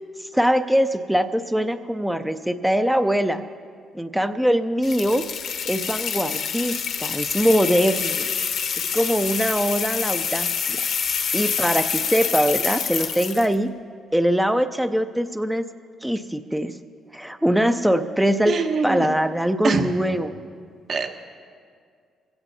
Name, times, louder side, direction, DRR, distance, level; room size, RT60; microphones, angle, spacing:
voice 1, 0.3-3.4 3.9-5.2 5.7-8.3 8.9-10.8 11.3-13.7 14.1-15.6 16.0-16.7 17.1-18.6 18.8-20.3, equal, 5° right, 8 dB, 0.5 m, -22 dB
sound 1, 4.8-13.5, left 7 dB, 70° left, 1.1 m, -27 dB
voice 2, 18.5-19.1 19.6-19.8 20.9-21.1, right 5 dB, 55° right, 5 dB, 1.2 m, -23 dB
21.5 x 16.0 x 2.8 m, 2.1 s
cardioid pair, 90°, 0 cm